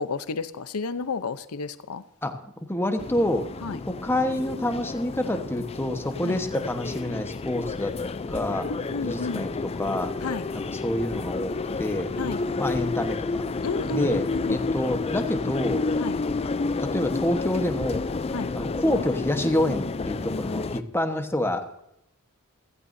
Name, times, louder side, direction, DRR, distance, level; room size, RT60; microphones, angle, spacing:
voice 1, 0.0-2.0 3.6-3.8 6.2-6.3 8.6-9.5 10.2-10.4 12.2-12.4 13.6-14.6 16.0-16.2 18.3-18.5, left 4 dB, 90° left, 13 dB, 0.7 m, -31 dB
voice 2, 2.7-3.4 3.9-8.7 9.0-10.1 10.7-12.1 12.6-13.4 13.9-15.9 16.8-18.1 18.5-21.6, left 1 dB, 10° left, 6 dB, 1.2 m, -27 dB
sound 1, 3.0-20.8, left 3 dB, 30° left, 0.4 m, -30 dB
16.0 x 15.5 x 2.7 m, 0.80 s
head